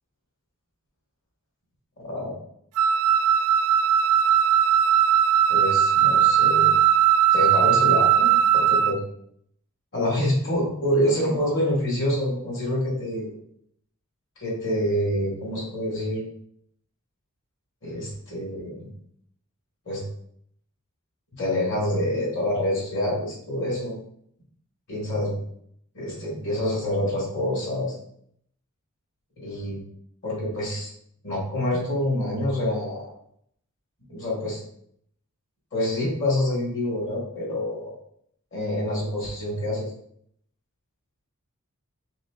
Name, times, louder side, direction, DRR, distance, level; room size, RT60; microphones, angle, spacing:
voice 1, 2.0-2.4 5.5-6.7 7.3-9.0 9.9-13.3 14.4-16.2 17.8-18.9 19.9-20.0 21.3-23.9 24.9-25.4 25.9-27.9 29.4-29.8 30.2-30.9 31.2-33.1 34.1-34.6 35.7-37.9 38.5-39.9, left 1 dB, 60° left, -4 dB, 1.6 m, -26 dB
Wind instrument woodwind instrument, 2.8-9.0, right 9 dB, 90° right, 0.3 m, -19 dB
5.5 x 3.2 x 2.4 m, 0.69 s
head